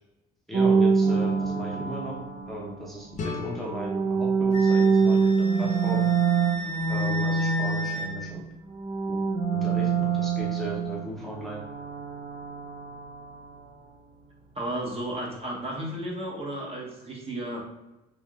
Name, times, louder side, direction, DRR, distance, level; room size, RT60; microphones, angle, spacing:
voice 1, 0.5-2.2 2.5-6.0 6.9-8.4 9.1-9.2 9.5-11.6, equal, ahead, -5 dB, 0.7 m, -36 dB
sound 1, 0.5-3.0 3.6-8.5 8.7-13.7, right 5 dB, 60° right, 0.8 m, -25 dB
sound 2, 3.2-6.0, left 4 dB, 40° left, 0.5 m, -40 dB
Wind instrument woodwind instrument, 4.5-8.1, equal, 90° left, 1.0 m, -35 dB
voice 2, 14.5-17.6, right 1 dB, 30° right, -3 dB, 0.9 m, -33 dB
3.4 x 2.6 x 2.3 m, 0.96 s
supercardioid pair, 85°, 19 cm